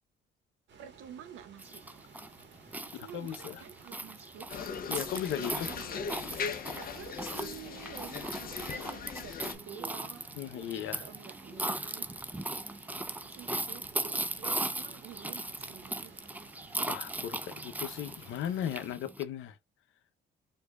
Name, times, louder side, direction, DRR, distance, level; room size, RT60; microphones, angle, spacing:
sound 1, 0.7-18.9, right 5 dB, 65° right, 1.3 m, -56 dB
voice 1, 0.8-1.8 2.8-4.5 5.5-6.0 6.6-10.2 11.0-12.1 13.3-16.1, right 9 dB, 90° right, 0.7 m, -49 dB
sound 2, 1.6-19.2, right 2 dB, 10° right, 0.4 m, -38 dB
voice 2, 2.9-3.6 4.9-5.7 10.4-11.0 16.9-19.6, left 10 dB, 85° left, 0.7 m, -37 dB
sound 3, 4.5-9.6, left 6 dB, 45° left, 0.7 m, -39 dB
4.5 x 2.7 x 2.3 m
cardioid pair, 90°, 20 cm